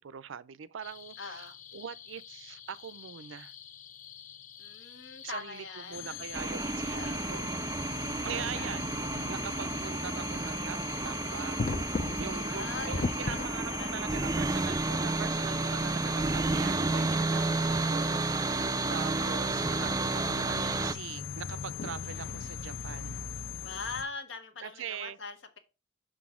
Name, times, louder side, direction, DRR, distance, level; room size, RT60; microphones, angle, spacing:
voice 1, 0.0-3.5 5.2-7.5 8.2-8.9 9.3-10.8 11.0-11.9 12.2-23.2 24.6-25.2, right 8 dB, 80° right, 0.5 m, -42 dB
sound 1, 0.8-13.5, left 4 dB, 40° left, 0.5 m, -41 dB
voice 2, 1.2-1.6 4.6-6.4 6.9-7.4 8.3-8.8 12.2-14.2 23.6-25.6, left 4 dB, 85° left, 1.5 m, -43 dB
sound 2, 5.9-24.0, left 9 dB, 65° left, 0.8 m, -41 dB
sound 3, 6.3-20.9, right 3 dB, 20° right, 0.3 m, -31 dB
6.5 x 6.1 x 3.6 m
head